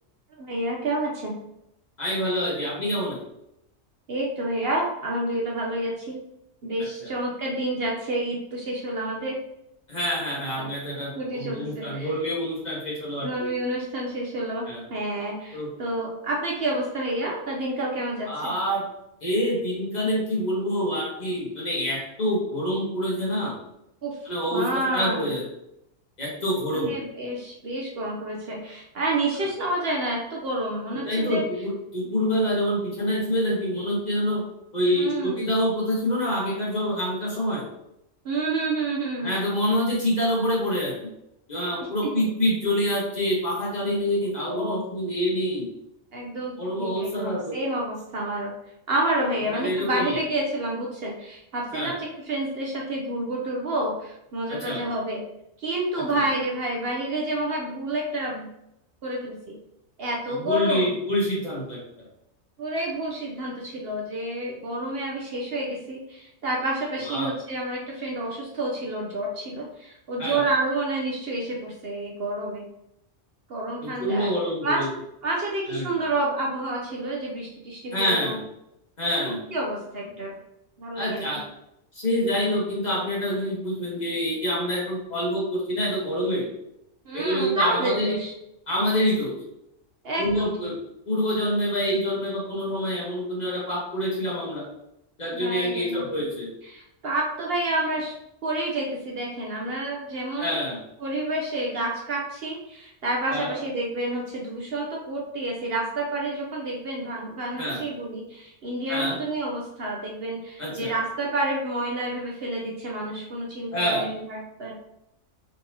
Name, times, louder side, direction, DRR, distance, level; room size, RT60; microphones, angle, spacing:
voice 1, 0.4-1.3 4.1-6.2 6.6-9.4 10.3-10.4 11.2-12.1 13.2-18.5 24.0-24.2 24.5-25.3 26.7-31.4 32.0-32.1 35.0-35.4 38.2-39.3 42.0-42.3 44.5-44.8 46.1-48.5 48.9-55.2 55.6-58.5 59.0-59.6 60.0-60.9 62.6-72.6 73.5-74.3 74.6-74.8 75.2-78.4 79.2-80.4 80.8-81.4 87.0-88.3 90.0-90.5 95.3-96.0 96.7-98.1 98.4-100.6 101.0-114.7, right 1 dB, 55° right, -2 dB, 0.8 m, -29 dB
voice 2, 2.0-3.2 7.0-7.1 9.9-13.3 14.7-14.8 15.5-15.7 18.3-18.8 19.2-23.5 24.2-24.6 24.9-25.4 26.2-26.9 30.9-34.4 34.7-37.6 39.2-40.9 41.5-45.7 46.6-47.5 49.5-50.2 51.7-52.0 54.5-54.8 56.1-56.2 60.3-61.8 67.0-67.3 70.2-70.4 73.8-74.9 75.7-75.9 77.9-78.4 79.0-79.4 80.9-81.4 81.9-86.5 87.1-88.1 88.7-89.3 90.2-90.7 91.0-94.6 95.2-96.5 100.4-100.8 103.3-103.5 107.6-107.8 108.9-109.2 110.6-110.9 113.7-114.0, equal, 35° left, -5 dB, 1.3 m, -26 dB
3.9 x 3.9 x 2.8 m, 0.82 s
omnidirectional pair, 1.3 m